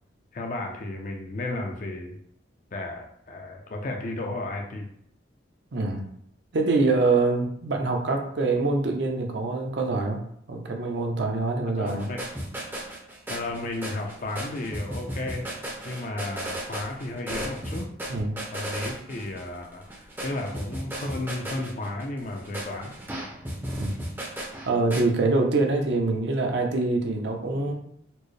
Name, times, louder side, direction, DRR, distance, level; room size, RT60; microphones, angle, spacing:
voice 1, 0.3-2.2 2.7-4.9 11.8-12.2 13.3-15.5 15.8-17.9 18.5-22.9, left 2 dB, 40° left, 2 dB, 0.4 m, -33 dB
voice 2, 5.7-6.0 6.5-10.2 10.5-12.1 18.1-18.4 23.8-23.9 24.6-27.7, right 3 dB, 60° right, 3 dB, 0.6 m, -25 dB
sound 1, 11.9-25.0, right 1 dB, 10° right, 0.5 m, -35 dB
4.3 x 2.0 x 3.1 m, 0.69 s
head